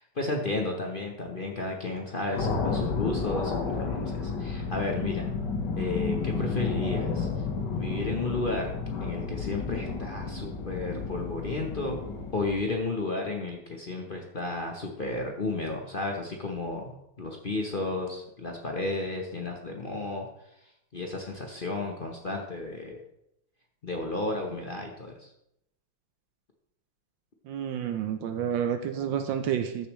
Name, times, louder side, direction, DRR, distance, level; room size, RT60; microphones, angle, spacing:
voice 1, 0.0-5.3 5.8-7.3 7.7-8.7 9.0-12.0 12.3-16.9 17.2-20.3 20.9-23.0 23.8-25.3, left 2 dB, 40° left, 1 dB, 0.8 m, -33 dB
sound 1, 2.4-12.8, left 4 dB, 60° left, 1.8 m, -31 dB
voice 2, 27.5-29.9, right 9 dB, 75° right, 8 dB, 1.3 m, -29 dB
13.0 x 6.9 x 3.1 m, 0.80 s
omnidirectional pair, 2.2 m